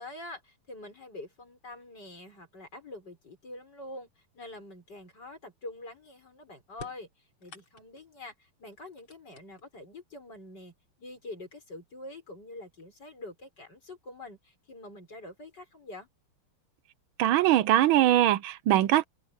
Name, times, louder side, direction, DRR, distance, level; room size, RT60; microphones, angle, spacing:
voice 1, 0.0-16.1, left 2 dB, 50° left, 6.7 m, -45 dB
sound 1, 6.7-8.1 8.7-9.9 10.9-11.0 12.0-12.1 12.6-13.1, left 4 dB, 65° left, 4.0 m, -50 dB
voice 2, 17.2-19.0, right 13 dB, 75° right, 1.4 m, -22 dB
omnidirectional pair, 2.4 m